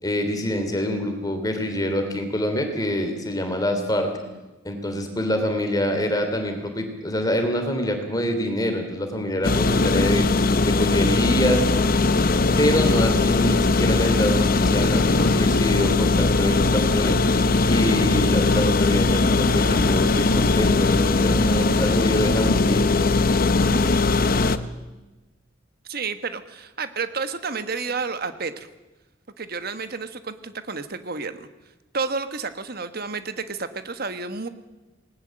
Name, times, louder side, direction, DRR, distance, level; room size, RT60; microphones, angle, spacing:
voice 1, 0.0-4.1 4.6-10.3 10.6-11.6 12.6-17.2 17.7-22.9, equal, 20° left, 5 dB, 3.1 m, -25 dB
sound 1, 9.4-24.6, left 3 dB, 45° left, 0.9 m, -20 dB
voice 2, 25.8-28.7 29.4-31.5 31.9-34.5, right 4 dB, 50° right, 10 dB, 1.4 m, -30 dB
19.5 x 19.5 x 7.6 m, 1.1 s
head